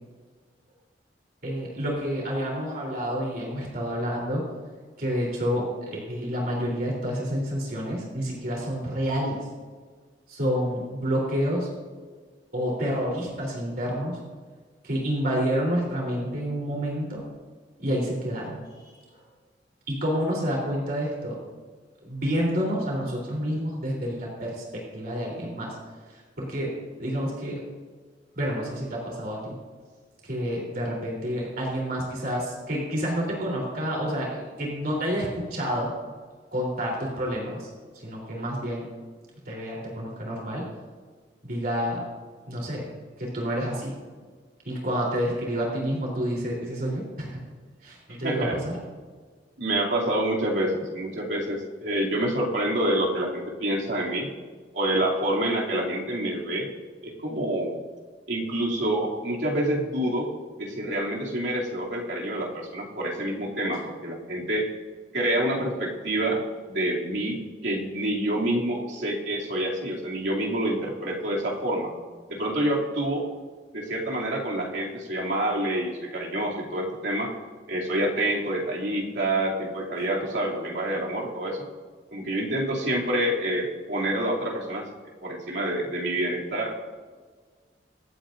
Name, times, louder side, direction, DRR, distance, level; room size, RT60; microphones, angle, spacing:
voice 1, 1.4-4.4 5.0-9.4 10.3-11.7 12.5-14.2 14.8-17.2 17.8-18.6 18.8-18.9 19.9-21.4 22.0-25.8 26.1-26.7 27.0-27.6 28.3-29.5 30.2-35.9 36.5-37.7 38.0-38.9 39.5-40.7 41.4-42.0 42.5-42.9 43.2-44.0 44.7-47.4 47.8-48.7, equal, 55° right, -3 dB, 3.6 m, -29 dB
voice 2, 48.2-48.6 49.6-54.3 54.7-56.7 57.0-57.8 58.3-60.3 60.6-64.7 65.1-66.4 66.7-71.9 72.3-73.3 73.7-77.3 77.7-81.7 82.1-84.8 85.2-86.7, right 1 dB, 90° right, -4 dB, 2.8 m, -27 dB
25.0 x 8.9 x 2.6 m, 1.5 s
head